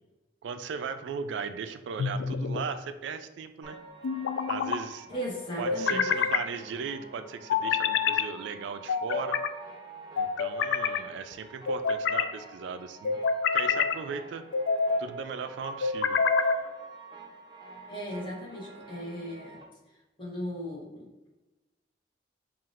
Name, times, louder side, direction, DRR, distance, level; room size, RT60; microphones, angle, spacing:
voice 1, 0.4-3.8 4.5-5.1 5.6-9.4 10.2-13.2 13.5-14.4 15.0-16.2, right 6 dB, 80° right, 10 dB, 0.3 m, -37 dB
sound 1, 2.0-2.7 4.0-4.8 5.6-6.5 7.5-8.3 8.9-9.5 10.2-11.0 11.7-12.3 13.0-14.0 14.5-15.0 15.8-16.6, left 5 dB, 85° left, 0.3 m, -27 dB
sound 2, 3.6-19.6, right 2 dB, 20° right, 0.5 m, -48 dB
voice 2, 5.1-6.0 17.9-19.6 20.2-21.3, equal, 25° left, -4 dB, 1.1 m, -37 dB
5.7 x 2.4 x 2.4 m, 1.1 s
head